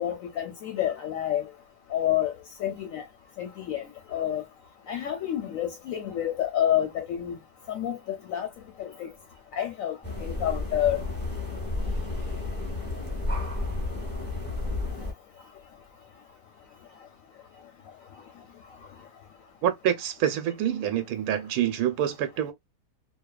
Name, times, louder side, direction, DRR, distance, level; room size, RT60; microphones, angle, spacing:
voice 1, 0.0-1.5 1.9-2.3 2.6-3.0 3.4-3.9 4.1-4.4 4.9-7.4 7.7-8.5 8.8-9.1 9.5-11.0, left 11 dB, 70° left, 0.9 m, -28 dB
sound 1, 10.0-15.1, left 2 dB, 10° left, 0.7 m, -31 dB
voice 2, 19.6-22.5, right 10 dB, 70° right, 1.0 m, -26 dB
2.6 x 2.3 x 2.2 m
omnidirectional pair, 1.7 m